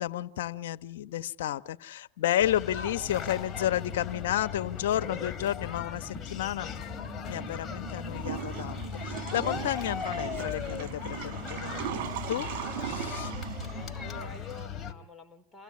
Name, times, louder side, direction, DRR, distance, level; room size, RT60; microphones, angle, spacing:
voice 1, 0.0-6.7 7.2-13.3, left 12 dB, 75° left, 12 dB, 1.1 m, -32 dB
sound 1, 2.4-14.9, left 6 dB, 25° left, 2.9 m, -38 dB
sound 2, 6.9-14.2, right 7 dB, 30° right, 4.4 m, -47 dB
Water / Toilet flush, 8.2-14.4, right 11 dB, 60° right, 4.0 m, -39 dB
voice 2, 13.7-15.6, left 2 dB, 5° left, 2 dB, 4.1 m, -48 dB
28.5 x 16.5 x 8.6 m, 0.63 s
hypercardioid pair, 105°, 0 cm